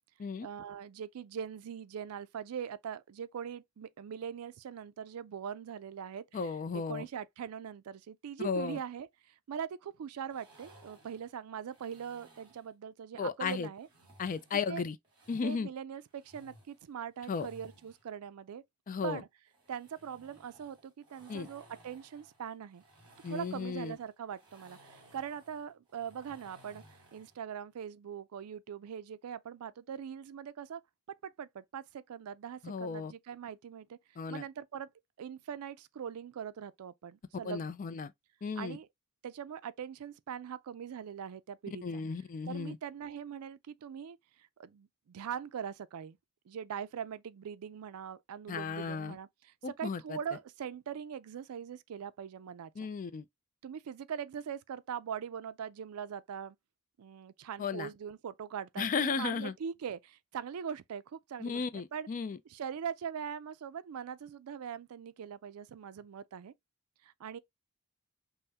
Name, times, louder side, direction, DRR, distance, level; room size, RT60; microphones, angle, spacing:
voice 1, 0.4-13.9 14.7-14.8 15.4-18.6 19.0-19.3 19.7-22.8 23.3-26.8 27.1-30.8 31.1-34.0 34.3-34.9 35.2-37.7 38.6-38.9 39.2-42.0 42.5-44.2 44.6-46.2 46.5-52.7 53.6-56.6 57.0-62.1 62.5-66.5 67.0-67.4, right 8 dB, 80° right, 0.4 m, -42 dB
voice 2, 6.3-7.1 8.4-8.8 13.2-13.7 14.2-15.0 15.3-15.7 17.3-17.5 18.9-19.2 21.3-21.5 23.2-23.9 32.6-33.1 34.2-34.4 37.4-38.1 38.4-38.8 41.8-42.8 48.5-49.2 49.6-50.2 52.8-53.2 57.6-57.9 58.8-59.5 61.4-62.4, left 5 dB, 35° left, 0.3 m, -35 dB
sound 1, 10.3-12.7 13.8-15.6 16.1-18.1 19.5-27.4, right 1 dB, 20° right, 2.2 m, -59 dB
5.5 x 2.1 x 2.8 m
head